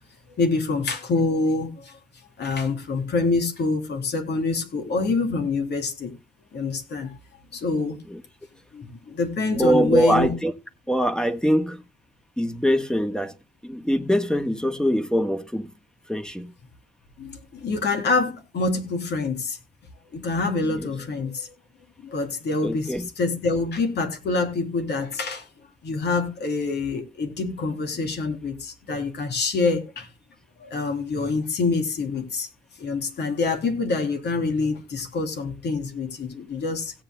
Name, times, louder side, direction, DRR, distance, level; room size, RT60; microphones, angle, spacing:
voice 1, 0.4-2.0 2.4-6.1 6.5-7.1 7.5-8.0 8.7-10.3 17.2-19.6 20.1-21.5 22.0-25.4 25.8-30.1 30.6-32.5 32.8-36.9, left 3 dB, 75° left, 3.1 m, -26 dB
voice 2, 9.6-10.5 10.9-11.8 12.4-13.3 13.6-15.7 16.1-16.5 20.7-20.9 22.6-23.1, equal, 5° left, 1.3 m, -23 dB
17.0 x 8.7 x 2.2 m
cardioid pair, 90°, 18 cm